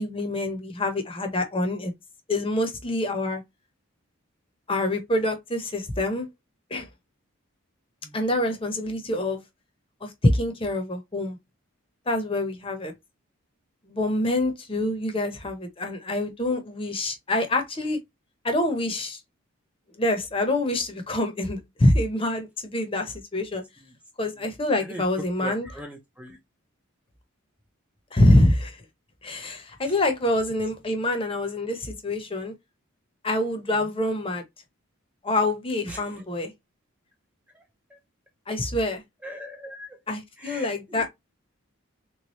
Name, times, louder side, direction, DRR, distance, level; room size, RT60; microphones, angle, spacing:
voice 1, 0.0-1.9 2.3-3.4 4.7-6.3 6.7-6.9 8.1-9.4 10.0-11.4 12.1-12.9 13.9-18.0 18.4-19.2 20.0-23.6 24.2-25.7 28.1-28.8 29.2-32.5 33.2-34.4 35.2-36.5 38.5-39.0 40.1-41.1, left 1 dB, 25° left, 0.8 m, -25 dB
voice 2, 25.4-26.4 35.9-36.0 39.2-39.9 40.4-40.7, right 1 dB, 5° right, 0.5 m, -39 dB
3.5 x 3.2 x 3.0 m
head